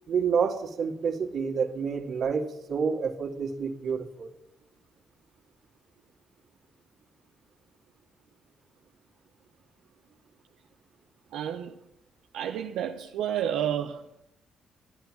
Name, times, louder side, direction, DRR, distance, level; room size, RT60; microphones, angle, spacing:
voice 1, 0.1-4.3, right 6 dB, 60° right, 2.4 m, -28 dB
voice 2, 11.3-11.8 12.3-14.0, right 10 dB, 85° right, 0.9 m, -30 dB
14.0 x 10.5 x 7.7 m
cardioid pair, 90°, 0 cm